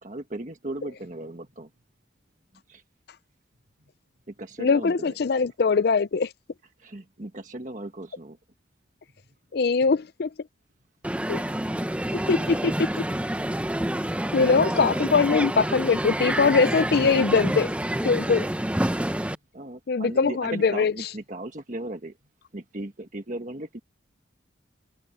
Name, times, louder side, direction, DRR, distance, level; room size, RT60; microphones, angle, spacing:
voice 1, 0.0-1.7 2.7-2.8 4.3-5.1 6.8-8.4 19.5-22.1 22.5-23.8, right 1 dB, 40° right, 1.5 m, -37 dB
voice 2, 1.0-1.7 3.5-4.2 9.1-9.6 18.9-19.5, equal, 60° right, 3.4 m, -62 dB
voice 3, 4.6-6.3 9.5-10.3 11.3-11.4 12.3-13.0 14.3-17.7 18.0-18.5 19.9-20.9, left 4 dB, 55° left, 0.4 m, -22 dB
Crowd, 11.0-19.4, right 1 dB, 5° right, 0.7 m, -28 dB
head